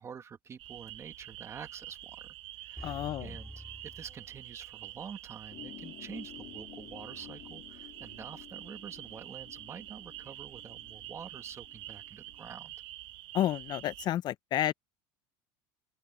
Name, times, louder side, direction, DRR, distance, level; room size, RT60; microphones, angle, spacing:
voice 1, 0.0-2.3 2.6-12.7, right 7 dB, 25° right, 1.9 m, -47 dB
sound 1, 0.6-14.1, right 15 dB, 50° right, 1.4 m, -47 dB
voice 2, 2.8-3.3 13.3-14.7, left 12 dB, 40° left, 0.5 m, -30 dB
sound 2, 2.8-4.9 5.3-5.4, equal, ahead, 3.7 m, -48 dB
sound 3, 5.5-12.5, left 17 dB, 55° left, 2.2 m, -52 dB
open air
cardioid pair, 140°, 11 cm